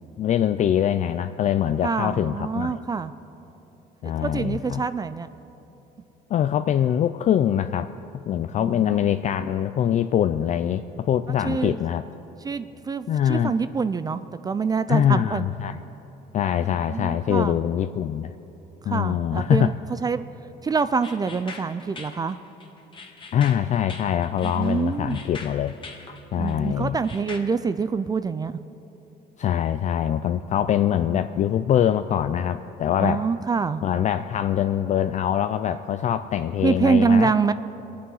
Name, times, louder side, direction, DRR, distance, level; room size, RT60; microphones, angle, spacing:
voice 1, 0.2-2.8 4.0-4.8 6.3-7.9 8.2-12.0 13.1-13.5 14.9-15.8 16.3-18.3 18.9-19.7 23.3-25.8 26.3-27.0 29.4-33.2 33.8-37.3, left 10 dB, 45° left, 10 dB, 0.4 m, -23 dB
voice 2, 1.8-3.1 4.0-5.3 8.6-9.2 11.4-11.8 12.4-15.5 16.9-17.6 18.9-19.7 20.0-20.3 20.6-22.4 24.4-25.2 26.4-28.6 33.0-33.8 36.6-37.5, right 5 dB, 25° right, 13 dB, 0.4 m, -25 dB
sound 1, 21.0-27.4, left 4 dB, 30° left, 1.6 m, -42 dB
22.0 x 8.5 x 5.6 m, 3.0 s
cardioid pair, 110°, 17 cm